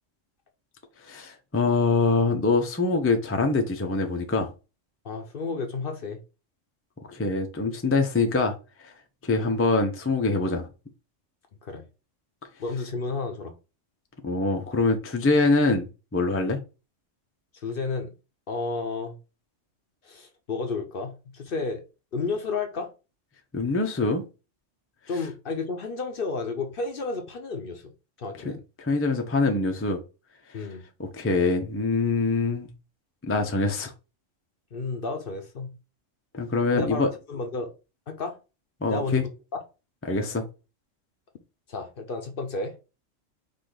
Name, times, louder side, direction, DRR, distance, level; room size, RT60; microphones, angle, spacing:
voice 1, 1.0-4.5 7.1-8.5 8.8-8.9 9.2-10.7 14.2-16.6 23.5-24.3 28.4-28.5 28.8-30.0 31.0-32.7 33.2-33.9 36.3-37.1 38.8-39.2 40.1-40.4, left 3 dB, 15° left, 0.5 m, -24 dB
voice 2, 5.0-6.2 11.6-11.8 12.6-13.5 17.5-18.1 18.5-19.2 20.0-21.8 22.1-22.9 25.1-27.8 28.2-28.6 30.5-30.8 34.7-35.8 36.7-37.7 38.1-38.4 38.8-39.3 41.7-42.8, left 4 dB, 50° left, 0.8 m, -32 dB
5.0 x 2.6 x 3.8 m
omnidirectional pair, 1.3 m